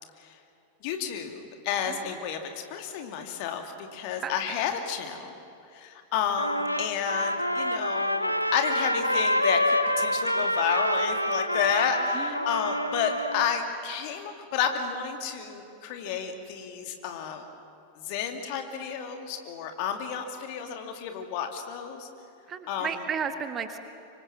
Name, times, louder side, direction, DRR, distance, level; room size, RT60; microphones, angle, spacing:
voice 1, 0.8-5.3 5.7-17.4 18.0-22.1 22.7-22.9, left 7 dB, 45° left, 5 dB, 2.5 m, -31 dB
Trumpet, 6.4-13.5, equal, 90° left, 1.0 m, -27 dB
voice 2, 12.1-12.5 22.5-23.8, right 7 dB, 25° right, 8 dB, 1.7 m, -33 dB
25.5 x 25.0 x 7.5 m, 2.7 s
figure-of-eight pair, 90°, 0 cm